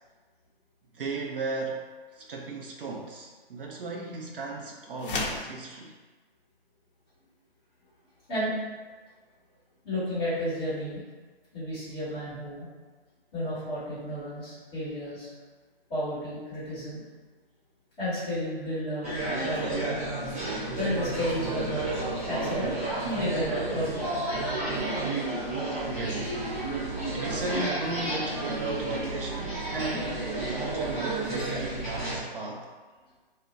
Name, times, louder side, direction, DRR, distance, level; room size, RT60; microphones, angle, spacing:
voice 1, 0.9-1.9 2.1-5.9 25.8-26.4 27.1-32.7, right 3 dB, 60° right, -1 dB, 0.5 m, -36 dB
sound 1, 5.0-5.5, left 3 dB, 60° left, 0.5 m, -31 dB
voice 2, 9.8-11.0 11.5-12.7 13.3-15.3 15.9-17.0 18.0-20.0 20.8-22.0 22.3-22.7 23.0-24.0, equal, 10° left, -12 dB, 1.0 m, -32 dB
sound 2, 19.0-32.2, right 2 dB, 15° right, 0.5 m, -31 dB
2.5 x 2.0 x 3.7 m, 1.4 s
hypercardioid pair, 160°, 31 cm